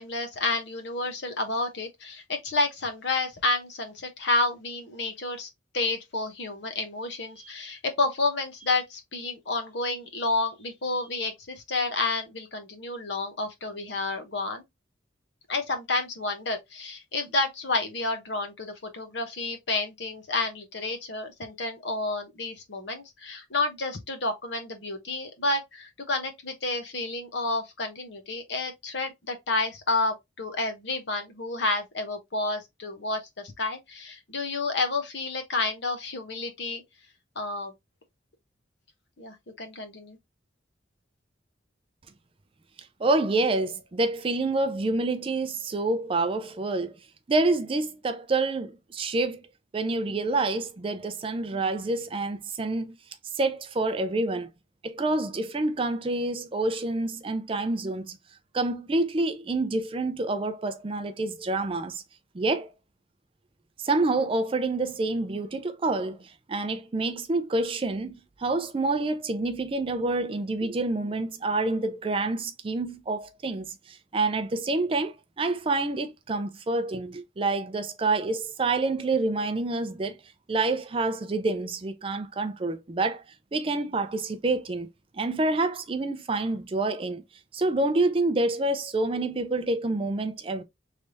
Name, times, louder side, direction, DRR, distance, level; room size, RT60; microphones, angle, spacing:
voice 1, 0.0-5.5 5.7-14.6 15.5-36.8 37.4-37.7 39.2-40.2, left 3 dB, 65° left, 0.9 m, -30 dB
voice 2, 43.0-47.0 47.3-49.4 49.7-52.9 53.3-54.5 54.8-58.2 58.5-62.0 62.3-62.7 63.8-80.2 80.5-83.2 83.5-84.9 85.1-87.2 87.5-90.6, right 2 dB, 30° right, 0.4 m, -27 dB
3.3 x 3.2 x 2.6 m
head